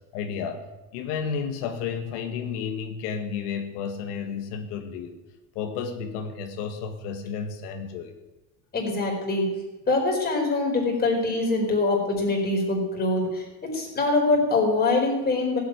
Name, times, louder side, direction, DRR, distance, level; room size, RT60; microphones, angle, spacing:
voice 1, 0.1-0.6 0.9-5.2 5.6-8.1, left 6 dB, 85° left, 5 dB, 2.0 m, -32 dB
voice 2, 8.7-9.6 9.9-15.6, left 2 dB, 20° left, 0 dB, 4.4 m, -24 dB
16.5 x 8.3 x 9.5 m, 1.1 s
cardioid pair, 165°, 46 cm